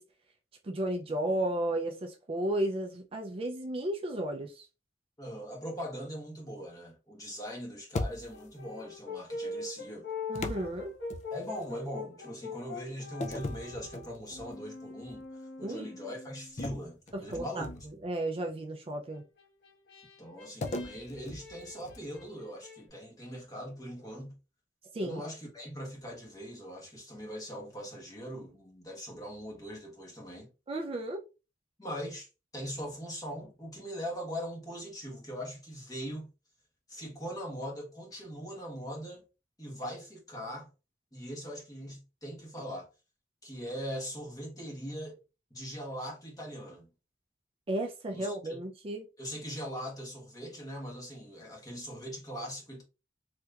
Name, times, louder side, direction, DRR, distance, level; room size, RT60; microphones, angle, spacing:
voice 1, 0.6-4.7 10.3-10.9 15.6-15.9 17.1-17.7 18.0-19.2 24.9-25.2 30.7-31.2 47.7-49.1, right 1 dB, 30° right, 0.4 m, -33 dB
voice 2, 5.2-10.1 11.3-15.2 15.6-17.7 20.2-24.3 25.0-30.5 31.8-36.3 36.9-39.2 39.6-40.7 41.1-42.9 43.4-45.2 45.5-46.9 48.1-48.6 49.2-52.8, equal, 20° left, 1.1 m, -41 dB
sound 1, 7.9-8.6 10.3-11.7 13.2-14.5 15.0-15.2 16.6-18.1 20.6-22.2, left 2 dB, 40° left, 0.4 m, -39 dB
Brass instrument, 8.3-16.6 19.1-22.8, left 3 dB, 65° left, 1.1 m, -43 dB
3.3 x 2.8 x 2.4 m
head